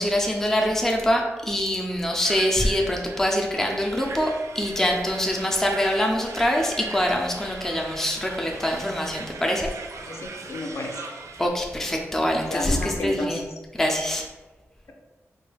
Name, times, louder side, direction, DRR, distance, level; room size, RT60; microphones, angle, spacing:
voice 1, 0.0-9.7 11.4-13.4 13.7-14.3, equal, 5° left, 0 dB, 0.3 m, -24 dB
sound 1, 2.2-11.5, right 4 dB, 70° right, 0.4 m, -40 dB
voice 2, 10.1-11.0 12.5-13.4, left 1 dB, 65° left, 1 dB, 0.5 m, -31 dB
3.7 x 2.2 x 3.2 m, 1.2 s
wide cardioid pair, 145°, 5 cm